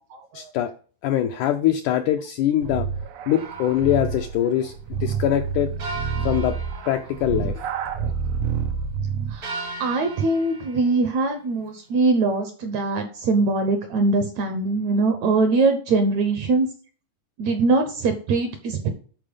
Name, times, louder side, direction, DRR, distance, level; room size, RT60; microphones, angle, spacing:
voice 1, 0.3-0.7 1.0-2.9 3.3-5.7 6.2-6.6 6.9-7.6, left 11 dB, 80° left, 6 dB, 1.8 m, -23 dB
sound 1, 2.6-9.5, right 6 dB, 85° right, 1.4 m, -28 dB
sound 2, 3.4-4.3 5.8-7.6 9.4-11.1, right 3 dB, 50° right, 1.0 m, -37 dB
voice 2, 9.8-16.7 17.4-18.9, right 3 dB, 70° right, 7 dB, 1.8 m, -22 dB
11.0 x 4.4 x 5.1 m, 0.41 s
omnidirectional pair, 4.1 m